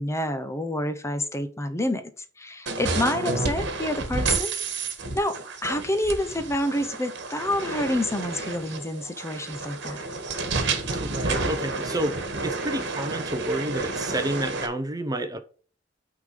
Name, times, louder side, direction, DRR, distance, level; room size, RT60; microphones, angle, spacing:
voice 1, 0.0-2.1 2.4-4.5 5.1-10.0, left 1 dB, 15° left, 0.8 m, -28 dB
sound 1, 2.7-14.7, right 3 dB, 65° right, 1.5 m, -30 dB
voice 2, 11.0-15.4, right 1 dB, 20° right, 0.7 m, -30 dB
9.2 x 3.8 x 5.1 m
head